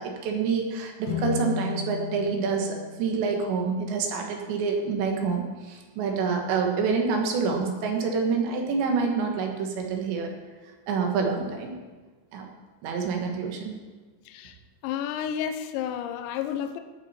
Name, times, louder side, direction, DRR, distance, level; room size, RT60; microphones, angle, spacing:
voice 1, 0.0-10.3 10.9-11.7 12.3-12.5 12.8-13.8, right 5 dB, 75° right, 2 dB, 3.6 m, -27 dB
sound 1, 1.0-4.3, left 8 dB, 55° left, 1.7 m, -34 dB
voice 2, 14.3-14.6 14.8-16.8, left 9 dB, 85° left, 8 dB, 2.9 m, -31 dB
17.5 x 8.9 x 4.3 m, 1.3 s
omnidirectional pair, 5.3 m